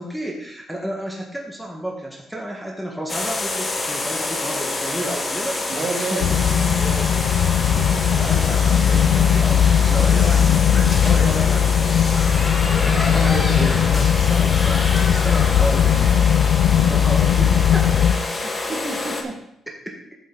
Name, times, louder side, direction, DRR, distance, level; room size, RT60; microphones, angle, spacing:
voice 1, 0.0-5.7 6.1-6.4 7.7-9.6 9.9-11.7 13.1-17.9 19.9-20.0, right 1 dB, ahead, -1 dB, 1.7 m, -31 dB
sound 1, 3.1-19.2, left 2 dB, 30° left, 1.5 m, -27 dB
voice 2, 5.7-6.3 6.8-7.1 12.6-13.9 18.4-19.4, right 3 dB, 45° right, 0 dB, 2.3 m, -30 dB
sound 2, 6.2-18.1, left 8 dB, 85° left, 0.5 m, -18 dB
9.4 x 7.5 x 4.0 m, 0.77 s
cardioid pair, 90°, 0 cm